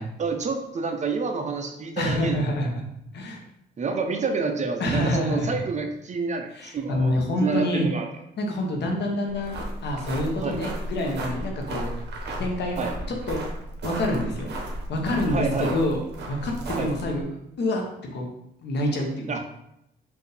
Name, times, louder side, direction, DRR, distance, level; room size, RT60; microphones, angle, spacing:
voice 1, 0.2-2.6 3.8-7.1 7.4-8.1 10.4-10.6 12.8-12.9 15.3-15.7 16.8-16.9 19.3-19.4, right 4 dB, 35° right, 5 dB, 0.5 m, -28 dB
voice 2, 2.0-2.8 3.1-3.4 4.8-5.6 6.5-7.9 8.4-9.6 9.8-11.9 12.4-12.8 13.3-13.4 13.8-14.5 14.9-17.3 17.6-17.8 18.1-18.3 18.6-19.4, left 1 dB, 60° left, 1 dB, 1.0 m, -27 dB
sound 1, 9.3-17.2, right 1 dB, 60° right, 1.0 m, -34 dB
4.5 x 2.6 x 3.3 m, 0.80 s
cardioid pair, 90°, 20 cm